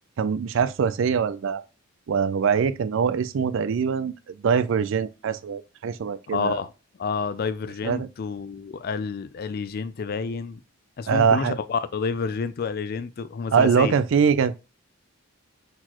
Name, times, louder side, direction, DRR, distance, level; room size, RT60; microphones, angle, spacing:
voice 1, 0.2-1.6 2.1-4.1 4.4-6.6 7.8-8.1 11.1-11.6 13.5-14.6, right 6 dB, 60° right, 0.4 m, -23 dB
voice 2, 6.3-6.7 7.0-10.6 11.0-14.0, left 5 dB, 45° left, 0.4 m, -29 dB
4.4 x 4.0 x 2.9 m
head